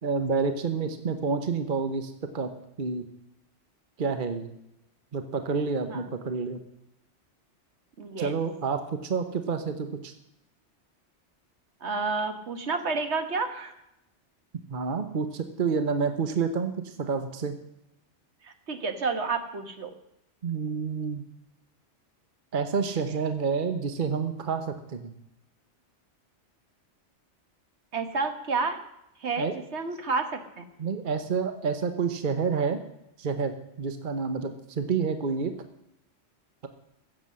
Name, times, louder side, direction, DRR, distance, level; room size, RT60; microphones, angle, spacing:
voice 1, 0.0-2.5 2.8-3.0 4.0-4.5 5.1-6.6 8.2-10.1 14.7-17.6 20.4-21.2 22.5-25.1 29.4-29.6 30.8-32.8 33.2-35.5, right 5 dB, 45° right, 8 dB, 1.1 m, -29 dB
voice 2, 8.0-8.3 11.8-13.7 18.4-19.9 27.9-28.8 29.2-30.6, right 4 dB, 70° right, 7 dB, 1.5 m, -30 dB
15.0 x 7.6 x 7.5 m, 0.82 s
omnidirectional pair, 1.2 m